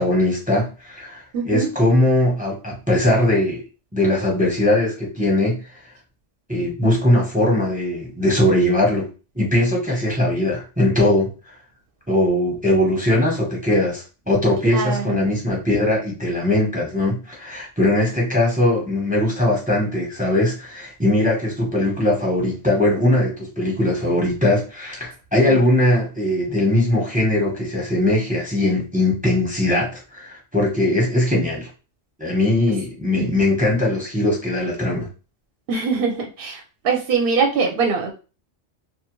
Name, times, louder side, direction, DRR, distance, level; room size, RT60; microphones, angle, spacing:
voice 1, 0.0-3.6 3.9-5.6 6.5-9.1 9.3-11.3 12.1-31.7 32.2-35.1, left 1 dB, 10° right, -2 dB, 0.7 m, -20 dB
voice 2, 1.3-1.7 14.7-15.3 25.5-25.6 33.1-33.3 35.7-38.1, right 5 dB, 60° right, 2 dB, 0.6 m, -23 dB
2.4 x 2.2 x 3.0 m, 0.33 s
omnidirectional pair, 1.2 m